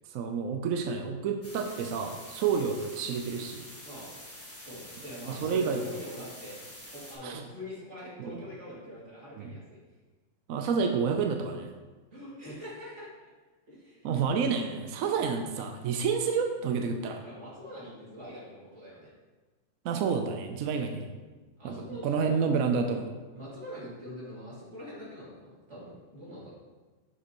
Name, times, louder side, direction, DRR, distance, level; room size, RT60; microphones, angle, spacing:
voice 1, 0.1-3.7 5.3-5.8 7.2-7.4 8.2-8.4 9.4-9.5 10.5-11.7 14.0-17.2 19.8-21.1 21.6-23.1, right 5 dB, 75° right, 5 dB, 0.7 m, -29 dB
sound 1, 1.4-7.2, left 1 dB, 10° left, 1.0 m, -47 dB
voice 2, 4.6-6.6 6.9-9.8 12.1-13.1 13.7-14.1 16.9-17.0 17.2-19.1 21.6-22.3 23.3-26.5, equal, 40° right, -8 dB, 2.7 m, -44 dB
7.4 x 6.4 x 3.0 m, 1.3 s
omnidirectional pair, 2.0 m